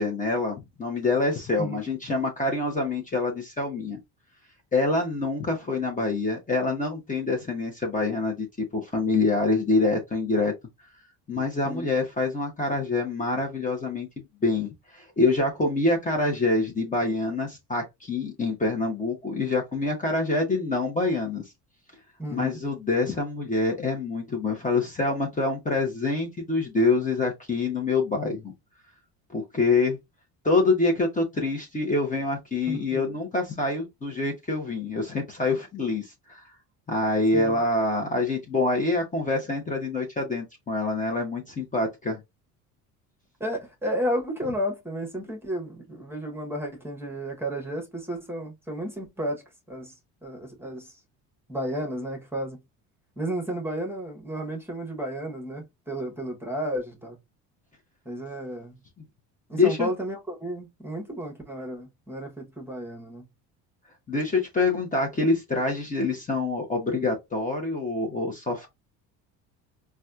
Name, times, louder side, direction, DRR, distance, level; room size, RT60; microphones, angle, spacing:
voice 1, 0.0-4.0 4.7-10.5 11.3-21.4 22.3-28.5 29.3-30.0 30.4-36.4 36.9-42.2 59.6-59.9 64.1-68.7, left 3 dB, 20° left, 0.9 m, -26 dB
voice 2, 22.2-22.6 32.7-33.2 37.3-37.6 43.4-49.9 50.2-51.0 51.5-52.6 53.2-57.2 58.0-58.8 59.5-63.2, equal, 5° right, 1.1 m, -32 dB
4.1 x 2.4 x 2.4 m
supercardioid pair, 95°, 39 cm